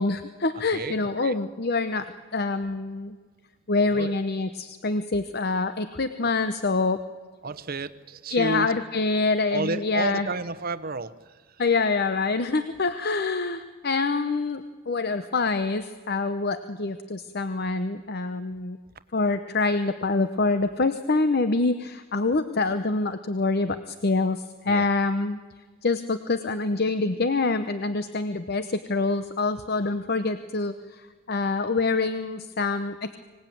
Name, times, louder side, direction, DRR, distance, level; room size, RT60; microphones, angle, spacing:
voice 1, 0.0-3.2 3.7-7.0 8.3-10.3 11.6-18.8 19.1-25.4 25.8-33.1, left 3 dB, 50° left, 10 dB, 0.8 m, -26 dB
voice 2, 0.5-1.4 3.9-4.1 7.4-8.7 9.5-11.6 24.7-24.9, right 3 dB, 45° right, 13 dB, 1.0 m, -32 dB
25.0 x 18.0 x 9.3 m, 1.5 s
head